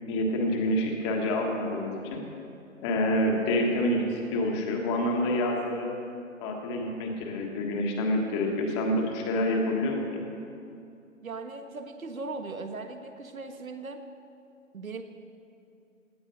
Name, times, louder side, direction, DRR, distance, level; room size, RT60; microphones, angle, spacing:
voice 1, 0.1-2.2 2.8-5.9 6.4-10.2, left 1 dB, 20° left, 1 dB, 1.6 m, -27 dB
voice 2, 11.2-14.0 14.7-15.0, right 3 dB, 90° right, 7 dB, 1.6 m, -38 dB
17.0 x 10.5 x 5.5 m, 2.6 s
hypercardioid pair, 150°, 40 cm